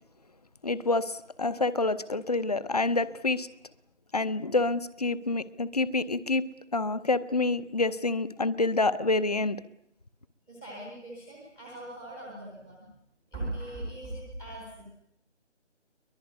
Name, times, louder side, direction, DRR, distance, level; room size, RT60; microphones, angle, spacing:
voice 1, 0.6-3.5 4.1-9.6, left 3 dB, 35° left, 0.9 m, -27 dB
voice 2, 10.5-12.9 13.3-14.9, right 1 dB, ahead, 1.0 m, -40 dB
23.5 x 19.5 x 9.5 m
figure-of-eight pair, 165°, 36 cm